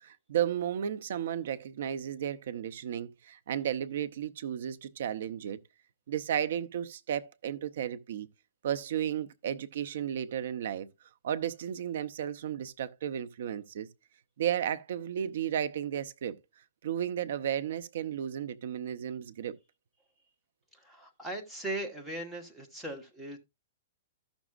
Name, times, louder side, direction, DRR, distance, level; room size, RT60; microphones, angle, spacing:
voice 1, 0.0-5.6 6.1-8.3 8.6-10.9 11.2-13.9 14.4-16.4 16.8-19.6, right 9 dB, 60° right, 0.7 m, -33 dB
voice 2, 20.8-23.4, right 1 dB, 5° right, 1.2 m, -38 dB
14.5 x 6.1 x 2.4 m
hypercardioid pair, 165°, 0 cm